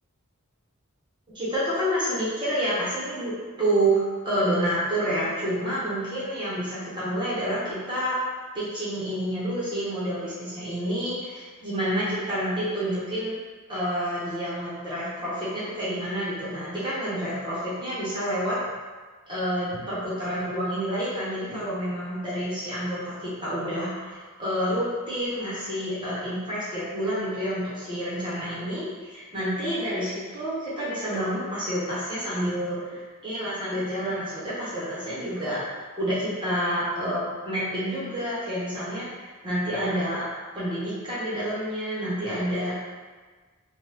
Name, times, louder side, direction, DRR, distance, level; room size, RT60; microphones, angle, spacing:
voice 1, 1.3-3.3 3.6-8.2 8.5-13.3 13.7-18.6 19.3-35.6 36.0-40.2 40.5-42.8, right 1 dB, 20° right, -9 dB, 0.9 m, -28 dB
2.9 x 2.2 x 3.3 m, 1.4 s
head